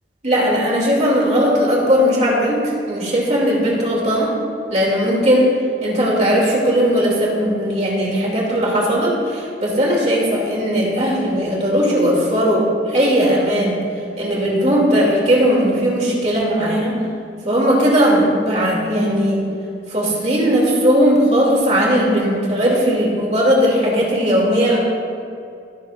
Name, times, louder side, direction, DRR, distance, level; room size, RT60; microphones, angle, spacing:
voice 1, 0.2-4.3 4.7-5.5 5.8-13.7 14.2-17.0 17.4-19.4 19.9-24.8, equal, 35° right, -3 dB, 2.5 m, -17 dB
17.0 x 9.6 x 2.5 m, 2.5 s
head